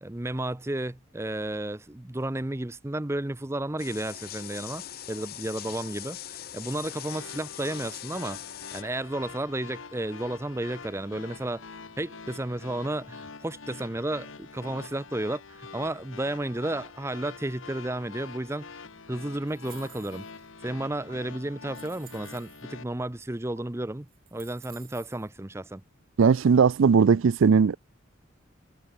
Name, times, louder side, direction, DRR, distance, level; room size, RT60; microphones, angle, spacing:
voice 1, 0.0-8.4 8.7-11.6 12.0-18.7 19.1-20.2 20.6-25.8, right 1 dB, 15° right, 0.6 m, -32 dB
sound 1, 3.8-8.8, left 11 dB, 45° left, 0.7 m, -41 dB
sound 2, 6.8-22.8, left 4 dB, 75° left, 1.2 m, -45 dB
sound 3, 19.5-20.4 21.1-21.2 21.7-22.6 23.6-23.7 24.1-25.3, right 14 dB, 45° right, 3.4 m, -52 dB
voice 2, 26.2-27.8, right 5 dB, 70° right, 0.4 m, -19 dB
head